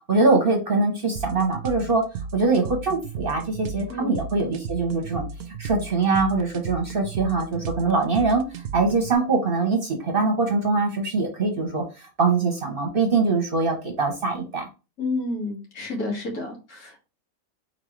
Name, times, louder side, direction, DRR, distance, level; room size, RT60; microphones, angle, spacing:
voice 1, 0.1-2.0 2.3-5.3 5.6-14.7, right 3 dB, 45° right, 2 dB, 1.0 m, -23 dB
sound 1, 1.2-9.2, right 5 dB, 70° right, 0.9 m, -35 dB
voice 2, 15.0-17.0, left 2 dB, 70° left, -1 dB, 2.2 m, -30 dB
4.4 x 3.8 x 3.1 m, 0.30 s
omnidirectional pair, 1.6 m